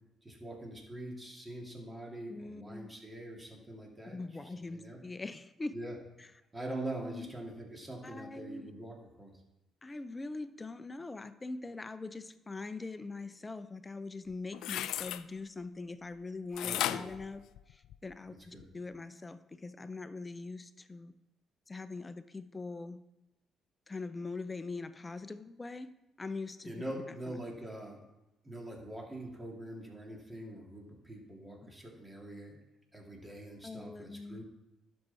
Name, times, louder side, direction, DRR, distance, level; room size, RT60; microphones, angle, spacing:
voice 1, 0.2-5.0 5.7-5.9 6.5-9.3 16.6-17.1 18.3-18.6 26.6-28.0 28.4-32.6 32.9-34.4, right 1 dB, 20° right, 0 dB, 2.9 m, -44 dB
voice 2, 2.3-2.9 4.1-5.7 6.2-6.3 7.0-7.3 8.0-8.7 9.8-17.4 17.7-21.1 21.7-23.0 23.9-27.3 31.6-31.7 33.6-34.4, left 3 dB, 25° left, 12 dB, 0.7 m, -42 dB
sound 1, 14.3-15.2 16.6-18.1 18.6-18.7, left 12 dB, 70° left, 0.3 m, -35 dB
11.0 x 6.5 x 4.4 m, 0.96 s
hypercardioid pair, 50°, 0 cm